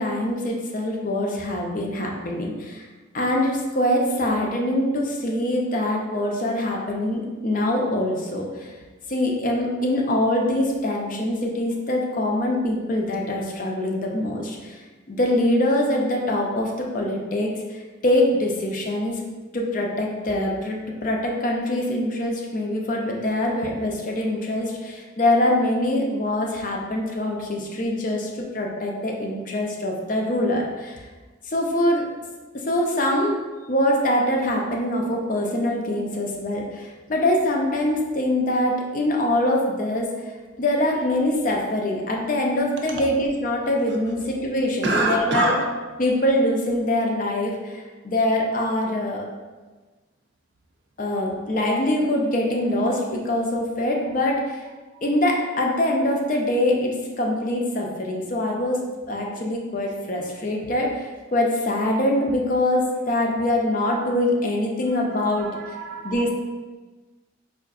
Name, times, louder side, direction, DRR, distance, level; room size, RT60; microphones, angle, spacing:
voice 1, 0.0-2.9 3.1-8.7 9.1-14.8 15.1-19.2 19.5-31.0 31.5-32.1 32.5-33.4 33.7-40.1 40.6-45.5 46.0-49.3 51.0-54.6 55.0-65.5 66.0-66.3, left 1 dB, 40° left, 0 dB, 0.5 m, -24 dB
voice 2, 44.8-45.6 65.0-66.3, right 2 dB, 65° right, 1 dB, 0.5 m, -26 dB
4.6 x 2.4 x 2.4 m, 1.3 s
head